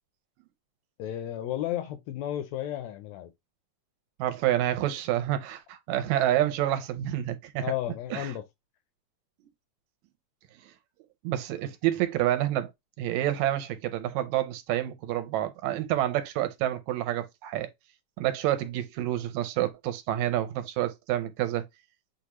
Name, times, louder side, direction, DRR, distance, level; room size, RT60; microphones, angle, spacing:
voice 1, 1.0-3.3 7.6-8.4, left 12 dB, 80° left, 1.6 m, -33 dB
voice 2, 4.2-7.6 8.1-8.3 11.2-12.7 13.0-17.7 18.2-21.6, right 13 dB, 80° right, 1.9 m, -28 dB
6.5 x 2.4 x 2.9 m
omnidirectional pair, 3.3 m